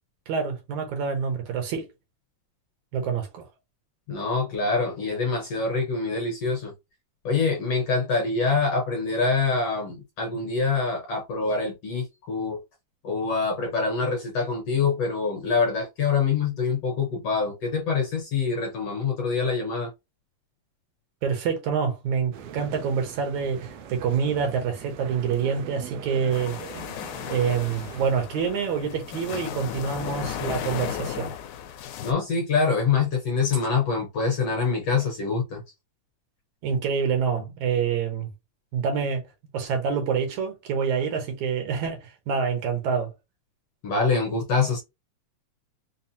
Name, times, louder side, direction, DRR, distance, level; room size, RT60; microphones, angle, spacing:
voice 1, 0.3-1.9 2.9-3.5 21.2-26.6 27.3-31.3 36.6-38.3 38.7-39.2 39.5-43.1, right 6 dB, 75° right, 2.0 m, -26 dB
voice 2, 4.1-6.7 7.2-12.6 13.0-19.9 32.0-35.6 43.8-44.8, left 4 dB, 65° left, 1.7 m, -25 dB
sound 1, 22.3-28.1, right 8 dB, 90° right, 1.4 m, -41 dB
sound 2, 26.3-32.1, left 10 dB, 80° left, 1.9 m, -35 dB
5.6 x 2.0 x 2.7 m
omnidirectional pair, 3.7 m